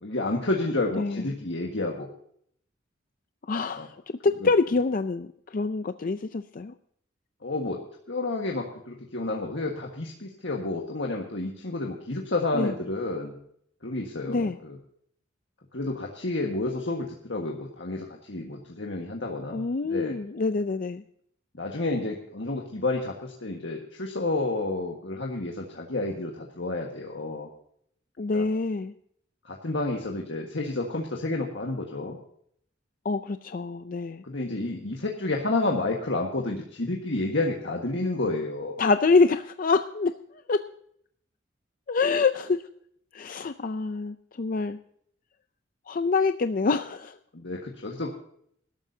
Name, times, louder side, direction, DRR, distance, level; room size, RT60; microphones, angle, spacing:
voice 1, 0.0-2.1 3.8-3.9 7.4-7.8 8.1-13.3 13.8-14.8 15.7-19.6 19.9-20.1 21.5-27.5 28.3-28.4 29.4-32.2 34.2-38.8 47.3-48.1, left 2 dB, 65° left, 0 dB, 1.6 m, -30 dB
voice 2, 1.0-1.3 3.4-6.7 12.5-12.7 14.3-14.6 19.5-21.0 28.2-28.9 33.0-34.2 38.8-40.6 41.9-42.6 43.1-44.8 45.9-47.2, left 4 dB, 45° left, 10 dB, 0.4 m, -26 dB
20.5 x 12.5 x 2.8 m, 0.67 s
head